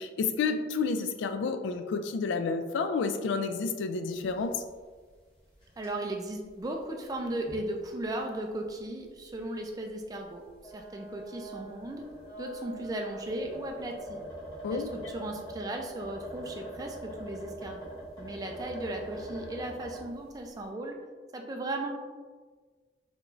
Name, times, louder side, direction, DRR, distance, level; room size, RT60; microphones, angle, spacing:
voice 1, 0.0-4.6 14.6-14.9, left 4 dB, 80° left, 8 dB, 0.3 m, -30 dB
sound 1, 4.2-4.7 4.9-5.0 5.5-5.9 6.5-6.6 7.5-7.6 8.0-8.1 9.3-9.4 10.5-20.1, equal, 25° left, 1.2 m, -43 dB
voice 2, 5.8-10.5 10.7-12.1 12.4-14.2 14.7-17.9 18.2-21.0 21.3-21.9, right 1 dB, 20° right, 2 dB, 0.3 m, -36 dB
3.4 x 3.0 x 2.4 m, 1.5 s
head